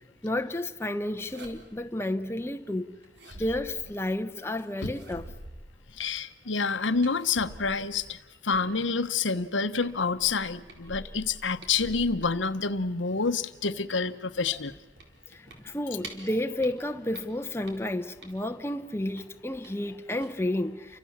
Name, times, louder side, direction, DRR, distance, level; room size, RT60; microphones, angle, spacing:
voice 1, 0.2-2.9 3.4-5.2 15.3-21.0, left 1 dB, 15° left, 0.9 m, -31 dB
sound 1, 1.2-1.9 3.0-4.3 4.8-6.1 7.0-9.0 9.4-9.5 9.8-12.8 13.2-16.3 16.6-18.6 19.2-19.8 20.1-20.3, right 1 dB, 70° right, 4.1 m, -47 dB
voice 2, 6.0-14.8, left 4 dB, 90° left, 1.1 m, -28 dB
30.0 x 25.0 x 7.3 m
head